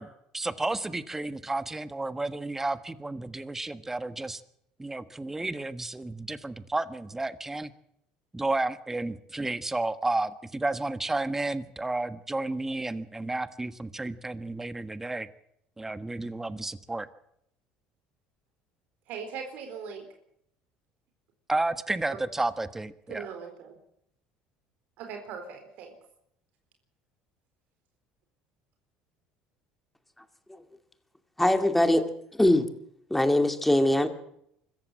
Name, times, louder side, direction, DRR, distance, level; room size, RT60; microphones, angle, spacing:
voice 1, 0.0-4.4 4.8-7.7 8.3-15.3 15.8-17.1 21.5-23.3, right 2 dB, 10° right, 13 dB, 1.4 m, -32 dB
voice 2, 19.1-20.1 23.1-23.8 25.0-25.9, right 6 dB, 65° right, 4 dB, 4.1 m, -39 dB
voice 3, 31.4-32.7 33.1-34.1, left 1 dB, 5° left, 8 dB, 2.4 m, -22 dB
25.0 x 14.5 x 7.5 m, 0.74 s
supercardioid pair, 95°, 3 cm